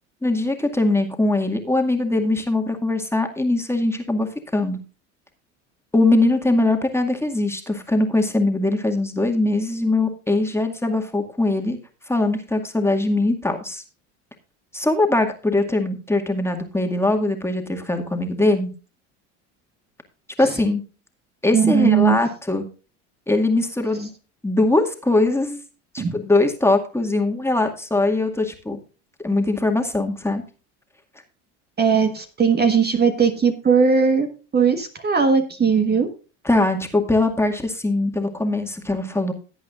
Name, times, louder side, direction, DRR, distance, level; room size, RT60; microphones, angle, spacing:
voice 1, 0.2-4.8 5.9-11.8 12.1-13.8 14.7-18.7 20.4-20.8 21.4-22.6 23.3-24.1 24.4-25.6 25.9-28.8 29.2-30.4 36.4-39.3, left 2 dB, 5° left, 3 dB, 2.1 m, -21 dB
voice 2, 21.5-22.2 26.0-26.1 31.8-34.3 34.5-36.1, right 6 dB, 25° right, 6 dB, 1.5 m, -18 dB
17.0 x 8.5 x 2.5 m, 0.34 s
hypercardioid pair, 85°, 37 cm